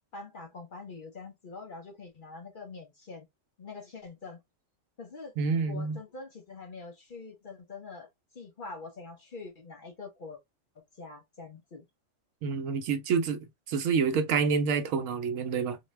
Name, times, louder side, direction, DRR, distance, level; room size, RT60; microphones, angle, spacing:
voice 1, 0.1-3.3 3.6-4.4 5.0-5.3 5.6-8.1 8.3-10.4 10.8-11.8, left 4 dB, 50° left, 0.7 m, -44 dB
voice 2, 5.4-6.0 12.4-15.8, right 5 dB, 80° right, 1.0 m, -28 dB
2.5 x 2.2 x 3.1 m
omnidirectional pair, 1.3 m